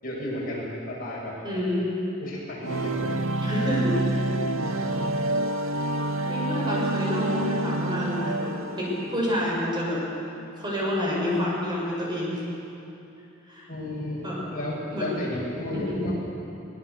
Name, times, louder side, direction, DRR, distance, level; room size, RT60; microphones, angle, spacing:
voice 1, 0.0-1.3 2.2-3.0 13.7-16.2, left 1 dB, 45° left, -5 dB, 7.7 m, -32 dB
voice 2, 1.4-2.0 3.4-4.2 6.3-10.0 10.6-12.4 13.5-13.7 14.2-14.4 14.9-15.2 15.7-16.0, left 1 dB, 20° right, -5 dB, 6.6 m, -28 dB
sound 1, 2.6-9.5, right 1 dB, 75° right, 1.1 m, -28 dB
23.0 x 21.5 x 7.2 m, 2.8 s
head